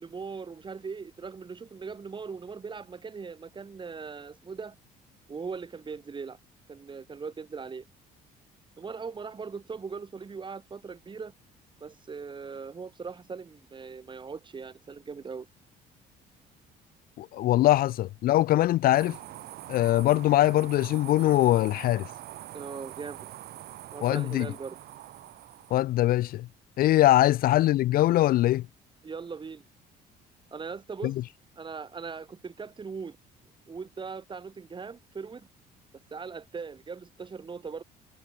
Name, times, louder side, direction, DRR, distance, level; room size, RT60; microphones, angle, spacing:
voice 1, 0.0-4.7 5.3-6.4 6.7-7.8 8.8-11.3 11.8-15.5 22.5-23.3 23.9-24.8 29.0-29.6 30.5-31.2 31.6-33.2 33.7-35.5 36.1-37.8, right 5 dB, 30° right, 2.6 m, -39 dB
voice 2, 17.2-19.2 19.7-22.1 24.0-24.5 25.7-26.5 26.8-28.7 31.0-31.1, left 15 dB, 60° left, 0.4 m, -22 dB
sound 1, 18.9-25.8, right 14 dB, 70° right, 1.2 m, -44 dB
cardioid pair, 110°, 17 cm